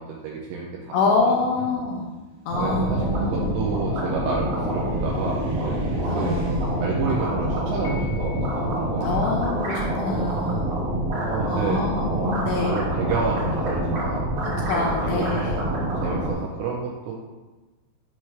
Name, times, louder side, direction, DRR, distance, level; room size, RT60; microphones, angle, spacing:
voice 1, 0.0-0.9 1.6-1.8 2.6-6.5 6.8-9.3 11.2-11.9 12.1-12.4 12.7-14.3 14.6-17.1, right 4 dB, 90° right, -2 dB, 2.5 m, -30 dB
voice 2, 0.9-2.1 2.5-3.5 6.1-6.9 9.0-10.7 11.5-12.8 14.4-15.6, left 4 dB, 80° left, -1 dB, 2.5 m, -26 dB
Car, 1.9-10.1, left 1 dB, 70° right, 1.9 m, -42 dB
sound 1, 2.5-16.3, right 1 dB, 55° right, 1.9 m, -26 dB
Piano, 7.8-9.0, left 6 dB, 60° left, 1.8 m, -44 dB
7.5 x 3.2 x 5.7 m, 1.2 s
omnidirectional pair, 5.9 m